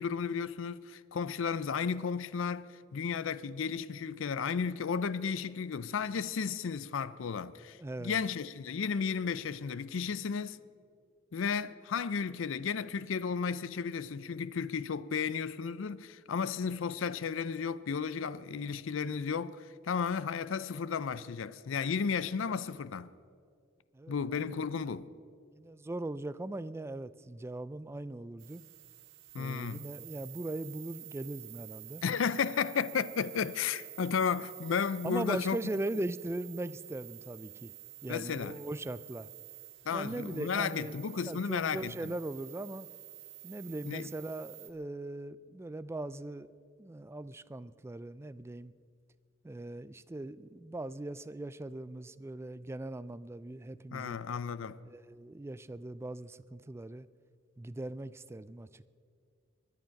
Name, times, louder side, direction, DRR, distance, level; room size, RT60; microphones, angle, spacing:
voice 1, 0.0-10.6 11.3-23.1 24.1-25.1 29.3-29.8 32.0-35.6 38.1-38.6 39.9-42.1 43.8-44.1 53.9-54.8, left 6 dB, 70° left, 0.5 m, -33 dB
voice 2, 7.8-8.2 23.9-24.4 25.5-28.6 29.3-32.0 35.0-37.7 38.0-39.3 39.9-40.9 41.3-42.9 43.4-46.5 46.8-48.7 49.4-54.2 54.9-57.1 57.6-58.9, right 2 dB, 15° right, 0.3 m, -40 dB
sound 1, 28.4-44.7, right 14 dB, 75° right, 1.7 m, -49 dB
23.0 x 10.0 x 5.8 m
head